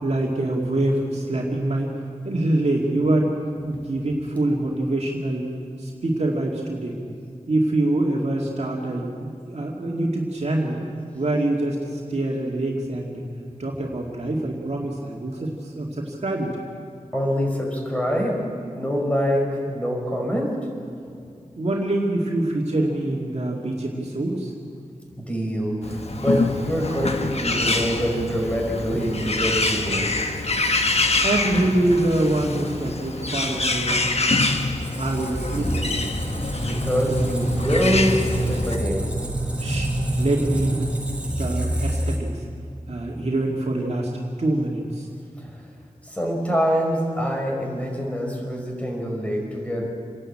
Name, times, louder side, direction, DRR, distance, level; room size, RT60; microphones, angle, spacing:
voice 1, 0.0-1.9 2.2-3.3 3.6-7.0 7.5-10.8 11.1-13.2 13.6-16.5 21.6-24.5 31.2-34.5 35.0-36.1 39.6-39.9 40.2-40.8 41.3-42.4 42.9-44.1 44.4-45.1, right 1 dB, 55° right, -2 dB, 2.3 m, -25 dB
voice 2, 17.1-18.4 18.7-20.6 25.2-30.1 36.6-39.1 45.4-45.5 46.0-49.9, equal, 10° left, -1 dB, 5.3 m, -25 dB
Bird, 25.8-38.8, left 3 dB, 50° left, 1.3 m, -26 dB
Squeak, 34.6-42.5, right 1 dB, 10° right, 3.7 m, -27 dB
28.0 x 11.0 x 8.7 m, 2.3 s
wide cardioid pair, 80°, 13 cm